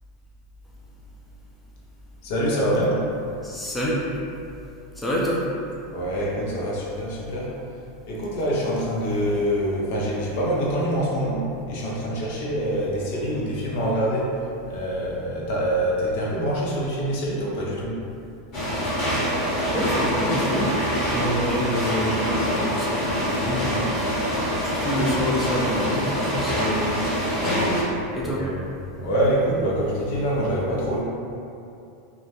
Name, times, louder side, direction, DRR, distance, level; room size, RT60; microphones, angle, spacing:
voice 1, 2.2-3.0 5.9-7.5 8.1-14.3 14.7-18.0 28.2-28.5 28.9-31.0, equal, 65° left, -5 dB, 0.6 m, -25 dB
voice 2, 3.4-4.0 5.0-5.5 19.7-23.9 24.6-27.0 27.4-27.8 28.1-28.4, equal, 10° left, -6 dB, 0.4 m, -27 dB
sound 1, 18.5-27.8, equal, 45° left, 1.0 m, -25 dB
2.1 x 2.0 x 2.9 m, 2.6 s
hypercardioid pair, 110°, 0 cm